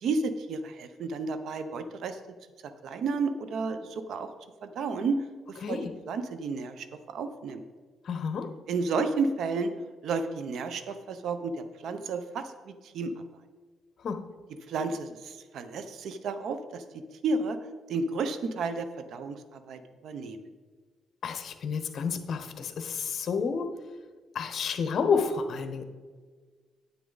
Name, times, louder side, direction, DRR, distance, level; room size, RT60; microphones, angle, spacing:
voice 1, 0.0-2.2 2.8-4.3 4.6-5.2 5.7-7.6 8.7-9.7 10.0-13.1 14.7-16.8 17.2-17.6 17.9-20.4, right 4 dB, 70° right, 10 dB, 0.8 m, -32 dB
voice 2, 5.6-5.9 8.0-8.5 14.0-14.2 21.2-23.7 24.3-25.8, left 5 dB, 55° left, 7 dB, 1.1 m, -30 dB
9.4 x 8.4 x 4.0 m, 1.4 s
cardioid pair, 90°, 0 cm